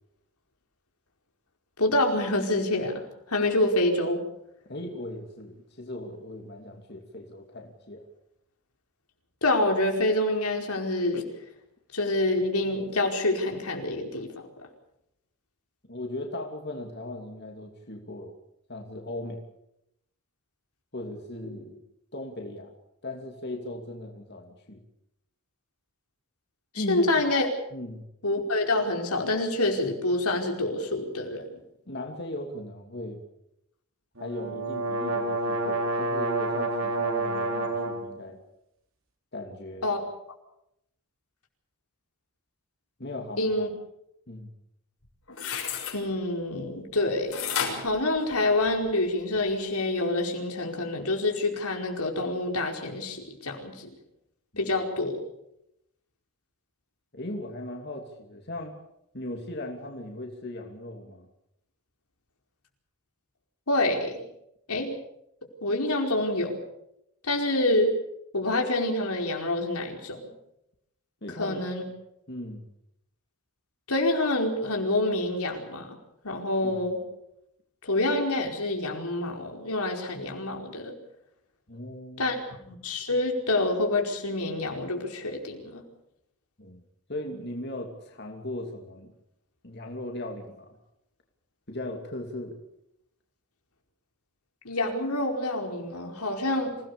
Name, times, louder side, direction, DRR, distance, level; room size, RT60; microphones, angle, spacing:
voice 1, 1.8-3.0 3.3-4.2 9.4-11.3 11.9-14.3 26.7-27.5 28.2-31.4 39.8-40.0 43.4-43.7 45.9-53.9 54.6-55.2 63.7-64.2 64.7-64.9 65.6-66.6 67.2-67.9 68.3-70.2 71.3-71.8 73.9-75.9 76.2-77.0 77.8-80.9 82.2-82.4 82.6-85.8 94.6-96.8, left 2 dB, 90° left, 2 dB, 4.8 m, -27 dB
voice 2, 4.7-8.1 15.8-18.4 18.7-19.4 20.9-21.8 22.1-22.7 23.0-24.8 26.7-27.1 27.7-28.0 31.9-33.2 34.2-38.4 39.3-39.9 43.0-43.7 44.3-44.5 54.5-54.7 57.1-58.8 59.1-61.3 71.2-71.6 72.3-72.7 76.6-76.8 81.7-82.4 86.6-86.8 87.1-89.1 89.6-90.8 91.7-92.6, left 1 dB, 50° left, 2 dB, 2.8 m, -38 dB
sound 1, 34.2-38.1, right 2 dB, 65° right, 4.3 m, -28 dB
sound 2, 45.0-46.0 47.3-48.9 49.3-49.4, left 7 dB, 70° left, 6.4 m, -32 dB
27.0 x 18.0 x 7.0 m, 0.80 s
head